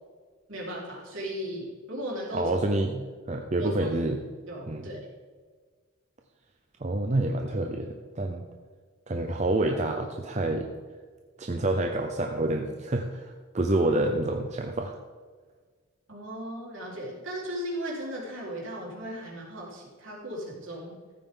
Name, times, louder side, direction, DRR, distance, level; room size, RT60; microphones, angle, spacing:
voice 1, 0.5-2.5 3.6-3.9 4.5-5.1 16.1-20.9, equal, 65° right, -4 dB, 4.0 m, -36 dB
voice 2, 2.3-4.2 4.7-4.9 6.8-8.4 9.1-10.7 11.4-14.9, right 2 dB, 30° right, 3 dB, 0.6 m, -28 dB
14.5 x 8.9 x 3.8 m, 1.5 s
head